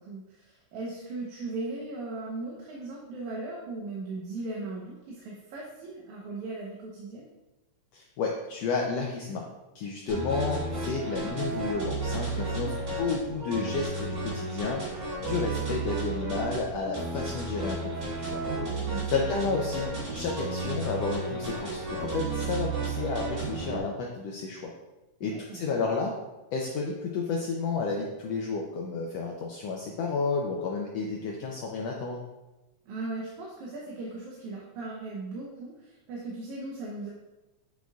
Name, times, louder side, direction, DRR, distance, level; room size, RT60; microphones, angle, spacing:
voice 1, 0.0-7.3 18.6-19.1 25.2-25.9 32.9-37.1, right 2 dB, 85° right, -3 dB, 2.4 m, -38 dB
voice 2, 7.9-9.4 9.7-18.4 19.1-19.9 20.1-24.7 25.2-26.2 26.5-32.2, left 4 dB, 75° left, 0 dB, 1.6 m, -31 dB
sound 1, 10.1-23.8, right 2 dB, 50° right, 3.6 m, -33 dB
9.2 x 6.3 x 2.3 m, 1.1 s
omnidirectional pair, 3.3 m